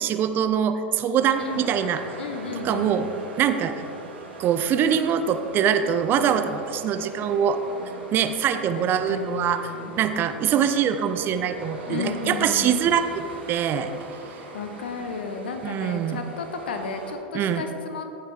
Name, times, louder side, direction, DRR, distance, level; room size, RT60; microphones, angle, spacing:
voice 1, 0.0-2.0 2.6-3.1 3.4-3.7 4.4-7.6 8.1-9.6 10.0-13.9 15.6-16.2 17.3-17.6, right 8 dB, 35° right, 9 dB, 0.5 m, -23 dB
sound 1, 1.3-17.1, right 2 dB, 75° right, 1.6 m, -40 dB
voice 2, 2.2-3.0 8.7-9.9 11.9-12.8 14.5-18.1, left 5 dB, 70° left, 6 dB, 0.9 m, -33 dB
15.0 x 5.6 x 3.5 m, 2.8 s
figure-of-eight pair, 85°, 6 cm